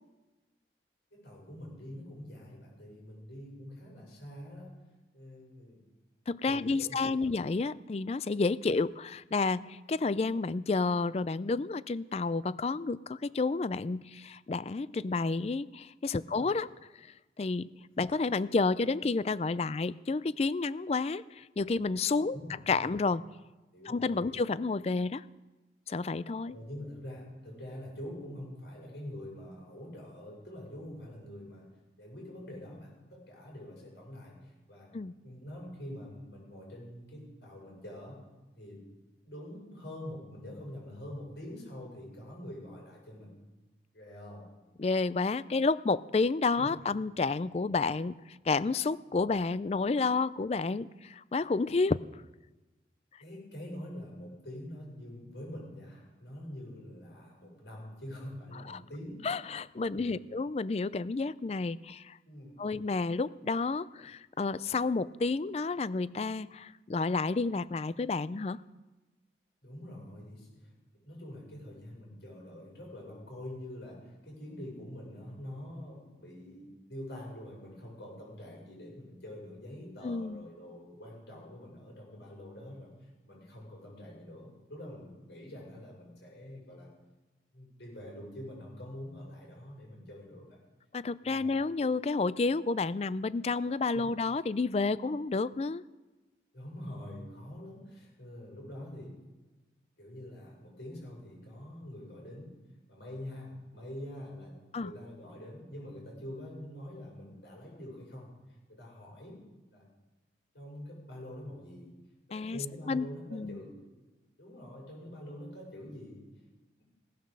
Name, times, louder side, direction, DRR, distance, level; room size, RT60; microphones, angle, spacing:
voice 1, 1.1-4.7 5.1-5.8 6.4-7.0 7.2-7.4 16.1-16.5 22.3-22.9 23.7-24.4 26.5-31.7 32.0-34.9 35.2-38.2 38.6-38.9 39.2-43.3 43.9-44.5 46.6-46.7 53.2-59.3 59.8-60.2 62.2-62.7 69.6-86.9 87.5-90.6 91.2-91.5 93.9-94.1 96.5-99.2 100.0-102.5 102.9-108.4 108.7-109.4 109.7-109.9 110.5-111.9 112.3-113.7 114.4-116.3 116.8-116.9, left 1 dB, 80° left, -2 dB, 6.6 m, -45 dB
voice 2, 6.3-16.7 17.4-17.7 18.0-22.4 22.7-23.2 23.9-25.3 25.9-26.6 34.9-35.2 44.8-52.0 58.7-58.8 59.2-62.2 62.6-68.6 80.0-80.4 90.9-95.8 104.7-104.9 112.3-112.6 112.9-113.1 113.3-113.6, left 3 dB, 35° left, 17 dB, 0.4 m, -30 dB
17.5 x 9.4 x 6.6 m, 1.1 s
head